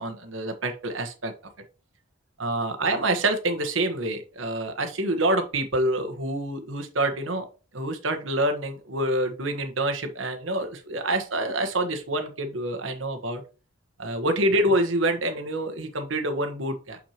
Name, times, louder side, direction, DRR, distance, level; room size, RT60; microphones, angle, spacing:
voice 1, 0.0-1.3 2.4-7.5 7.7-13.4 14.0-17.0, right 1 dB, 70° right, 6 dB, 1.3 m, -27 dB
6.5 x 6.0 x 2.9 m, 0.34 s
head